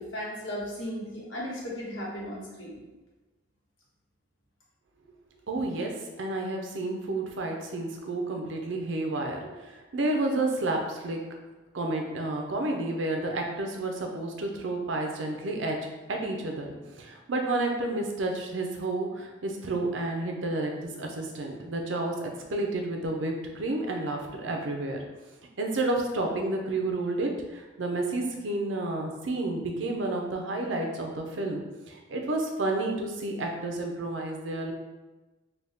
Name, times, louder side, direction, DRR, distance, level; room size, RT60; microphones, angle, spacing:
voice 1, 0.0-2.8, equal, 90° left, -6 dB, 1.2 m, -36 dB
voice 2, 5.5-5.9 6.2-11.2 11.7-15.8 16.1-25.0 25.6-34.7, right 2 dB, 85° right, 2 dB, 0.6 m, -30 dB
3.9 x 2.3 x 3.5 m, 1.2 s
head